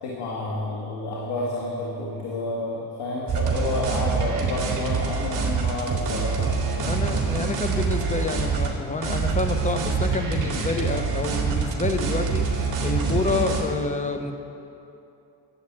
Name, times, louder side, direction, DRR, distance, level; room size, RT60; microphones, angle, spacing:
voice 1, 0.0-7.0, left 2 dB, 85° left, -3 dB, 2.1 m, -30 dB
sound 1, 3.3-8.7 9.0-13.6, right 5 dB, 45° right, 2.4 m, -25 dB
voice 2, 6.9-14.3, left 3 dB, 15° left, 7 dB, 0.9 m, -28 dB
11.5 x 8.2 x 8.8 m, 2.8 s
cardioid pair, 120°, 42 cm